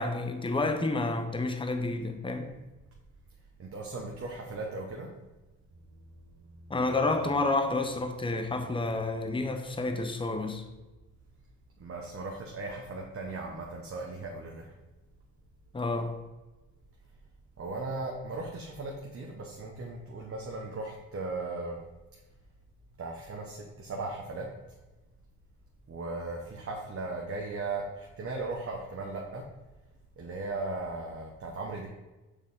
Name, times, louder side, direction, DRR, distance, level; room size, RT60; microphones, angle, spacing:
voice 1, 0.0-2.5 6.7-10.6 15.7-16.2, left 2 dB, 15° left, 6 dB, 0.8 m, -30 dB
voice 2, 3.6-5.1 11.8-14.7 17.6-21.8 23.0-24.5 25.9-29.4 30.2-31.9, right 3 dB, 45° right, -1 dB, 1.1 m, -37 dB
6.5 x 3.9 x 3.7 m, 1.1 s
supercardioid pair, 65°, 32 cm